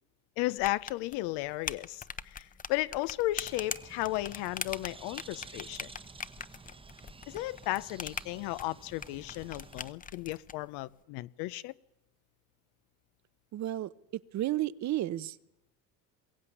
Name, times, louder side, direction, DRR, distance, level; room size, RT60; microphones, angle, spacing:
voice 1, 0.4-5.9 7.3-11.7, left 18 dB, 80° left, 0.8 m, -34 dB
sound 1, 0.6-10.5, left 6 dB, 20° left, 0.7 m, -42 dB
Bird, 3.4-9.9, right 4 dB, 15° right, 0.9 m, -51 dB
voice 2, 13.5-15.4, right 14 dB, 45° right, 0.7 m, -33 dB
22.0 x 15.5 x 9.7 m
cardioid pair, 115°, 40 cm